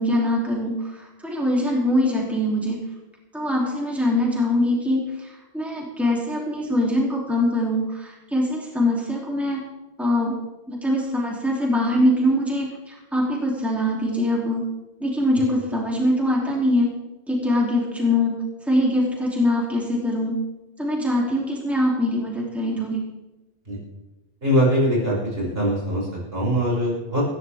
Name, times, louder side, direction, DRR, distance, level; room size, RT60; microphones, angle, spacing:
voice 1, 0.0-2.8 3.3-9.6 10.0-10.4 10.7-14.7 15.0-16.9 17.3-20.4 20.8-23.0, left 1 dB, ahead, -3 dB, 3.1 m, -23 dB
voice 2, 24.4-27.2, equal, 65° right, -6 dB, 6.6 m, -22 dB
19.5 x 15.0 x 3.6 m, 1.1 s
omnidirectional pair, 1.1 m